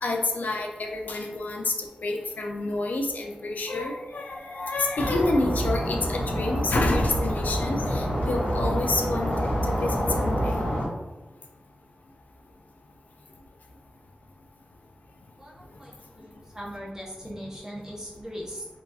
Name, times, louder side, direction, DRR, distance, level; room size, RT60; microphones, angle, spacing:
voice 1, 0.0-10.5, left 2 dB, 70° left, 1 dB, 0.3 m, -28 dB
sound 1, 5.0-10.9, equal, 85° left, 0.7 m, -27 dB
voice 2, 15.4-18.7, equal, 20° right, -5 dB, 0.7 m, -40 dB
2.7 x 2.3 x 2.3 m, 1.1 s
wide cardioid pair, 110°, 3 cm